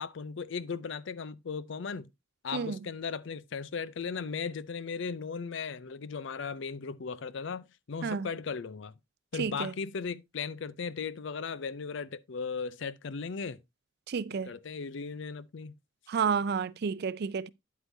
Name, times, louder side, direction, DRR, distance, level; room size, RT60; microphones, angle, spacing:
voice 1, 0.0-2.1 2.4-8.9 9.3-13.6 14.5-15.7, left 5 dB, 70° left, 0.5 m, -37 dB
voice 2, 9.4-9.7 14.1-14.5 16.1-17.5, right 6 dB, 55° right, 0.4 m, -31 dB
9.5 x 8.0 x 2.7 m
head